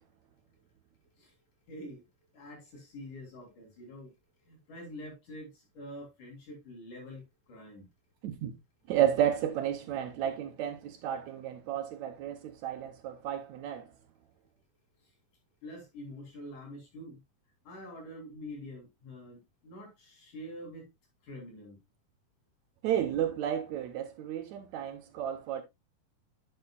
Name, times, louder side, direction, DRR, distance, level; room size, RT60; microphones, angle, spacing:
voice 1, 1.7-2.0 2.3-4.1 4.5-7.9 15.6-17.2 17.6-20.9 21.2-21.8, left 1 dB, 70° left, 4.8 m, -46 dB
voice 2, 8.9-13.9 22.8-25.6, right 10 dB, 75° right, 1.9 m, -32 dB
10.5 x 6.8 x 2.3 m
omnidirectional pair, 3.7 m